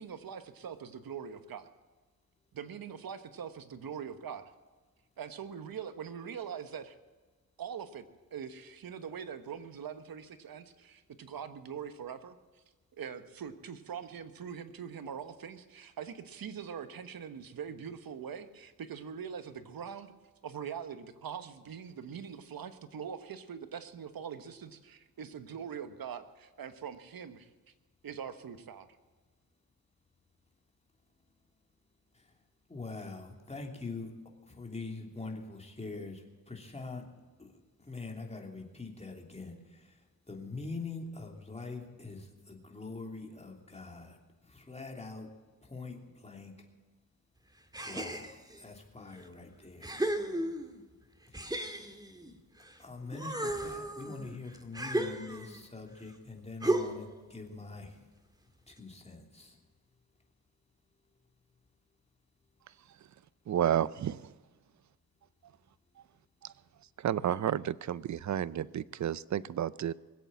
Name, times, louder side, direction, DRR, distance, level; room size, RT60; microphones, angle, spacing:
voice 1, 0.0-1.7 2.5-4.5 5.2-6.9 7.6-8.0 8.3-12.4 13.0-20.1 20.4-27.5 28.0-28.9, right 7 dB, 70° right, 10 dB, 1.3 m, -42 dB
voice 2, 32.7-34.1 34.4-37.0 37.4-45.3 45.6-46.5 47.8-49.9 51.3-51.8 52.8-58.0 58.7-59.6, left 3 dB, 15° left, 1 dB, 3.0 m, -44 dB
sound 1, 47.7-48.6 49.2-49.3 49.8-50.8 51.3-52.8 53.1-55.6 56.6-57.2, right 1 dB, 10° right, 1.8 m, -34 dB
voice 3, 63.5-64.3 66.4-66.5 67.0-69.9, right 10 dB, 50° right, 19 dB, 0.5 m, -31 dB
21.0 x 8.3 x 7.5 m, 1.3 s
cardioid pair, 80°, 36 cm